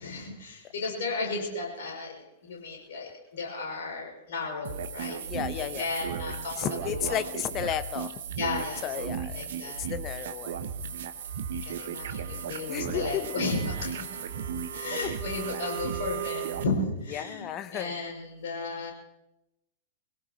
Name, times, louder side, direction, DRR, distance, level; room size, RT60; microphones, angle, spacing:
voice 1, 0.0-2.1 2.4-5.2 5.5-7.2 8.4-8.9 9.3-9.8 11.6-14.4 14.7-18.9, left 3 dB, 55° left, -1 dB, 6.2 m, -34 dB
sound 1, 4.6-16.6, right 7 dB, 55° right, 1.1 m, -35 dB
voice 2, 5.2-5.9 6.6-8.2 8.8-10.6 12.7-13.4 15.0-15.1 17.1-17.9, left 11 dB, 30° left, 12 dB, 0.9 m, -33 dB
24.5 x 17.5 x 3.0 m, 0.91 s
figure-of-eight pair, 100°, 0 cm